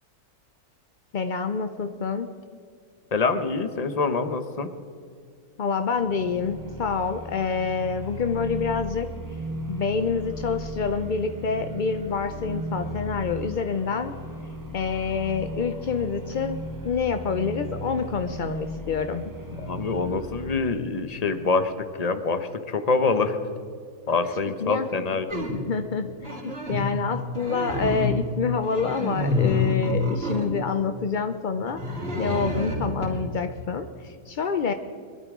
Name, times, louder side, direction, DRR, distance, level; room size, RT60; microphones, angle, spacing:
voice 1, 1.1-2.3 5.6-9.1 9.7-14.1 14.7-19.2 24.6-24.9 25.5-34.7, left 5 dB, 60° left, 8 dB, 0.5 m, -27 dB
voice 2, 3.1-4.7 19.5-21.7 22.0-23.4 24.1-25.5, left 4 dB, 35° left, 9 dB, 0.8 m, -25 dB
sound 1, 5.9-20.7, right 1 dB, 15° right, 0.8 m, -36 dB
sound 2, 25.3-25.7 26.2-26.9 27.3-28.3 28.6-30.5 31.7-33.1, left 2 dB, 40° right, 3.9 m, -27 dB
22.5 x 12.5 x 3.7 m, 2.3 s
omnidirectional pair, 1.6 m